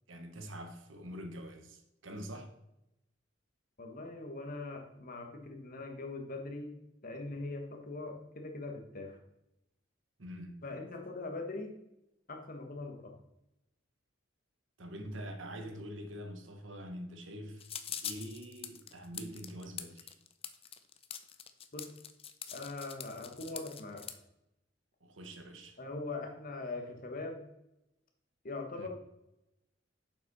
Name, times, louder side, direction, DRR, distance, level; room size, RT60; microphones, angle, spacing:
voice 1, 0.1-2.5 10.2-10.6 14.8-17.7 18.0-20.1 25.0-25.8 28.8-28.9, equal, 80° right, 1.2 m, -45 dB
voice 2, 3.8-6.7 7.0-9.2 10.6-11.7 12.3-13.1 21.7-21.9 22.5-24.0 25.8-27.4 28.4-28.9, left 2 dB, 45° left, 1.4 m, -41 dB
sound 1, 17.6-24.2, left 9 dB, 30° left, 0.5 m, -43 dB
7.1 x 5.8 x 5.4 m
head